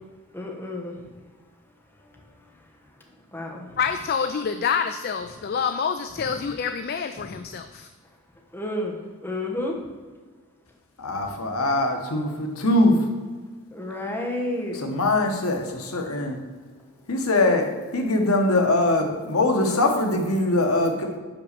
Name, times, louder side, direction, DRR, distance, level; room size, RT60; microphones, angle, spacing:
voice 1, 0.3-0.9 3.3-3.8 8.5-9.0 9.2-9.7 13.7-14.8, left 1 dB, 10° left, -1 dB, 1.1 m, -30 dB
voice 2, 3.8-7.9, left 6 dB, 45° left, 8 dB, 0.3 m, -27 dB
voice 3, 11.0-13.1 14.7-16.4 17.1-17.7 17.9-21.2, left 2 dB, 90° left, 3 dB, 1.2 m, -22 dB
5.8 x 5.0 x 6.7 m, 1.4 s
head